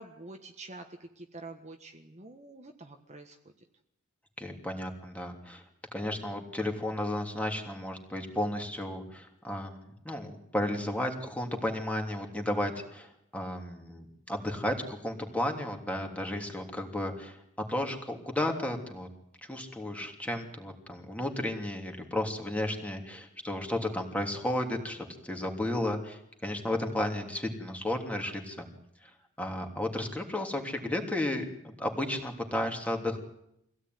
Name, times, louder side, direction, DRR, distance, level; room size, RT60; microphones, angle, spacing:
voice 1, 0.0-3.7, right 2 dB, 35° right, 4 dB, 1.5 m, -47 dB
voice 2, 4.4-5.6 5.9-17.4 17.7-19.1 19.5-28.7 29.4-33.2, left 1 dB, 5° left, 3 dB, 3.1 m, -33 dB
25.0 x 17.0 x 9.4 m, 0.79 s
head